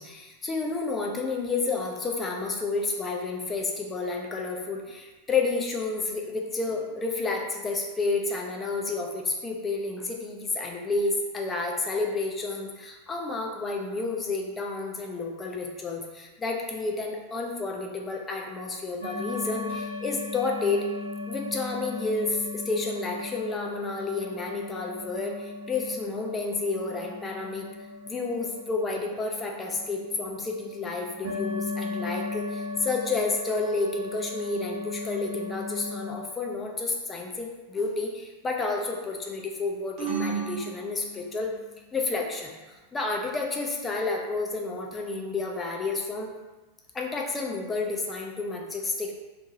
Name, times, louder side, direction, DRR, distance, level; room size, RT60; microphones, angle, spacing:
voice 1, 0.0-20.8 21.3-27.7 28.0-41.5 41.9-46.3 46.9-49.1, left 3 dB, 15° left, 1 dB, 0.4 m, -30 dB
sound 1, 19.0-36.1, left 3 dB, 75° right, 0.7 m, -37 dB
sound 2, 40.0-41.7, right 6 dB, 35° right, 0.8 m, -33 dB
2.7 x 2.5 x 2.6 m, 1.2 s
figure-of-eight pair, 90°, 0 cm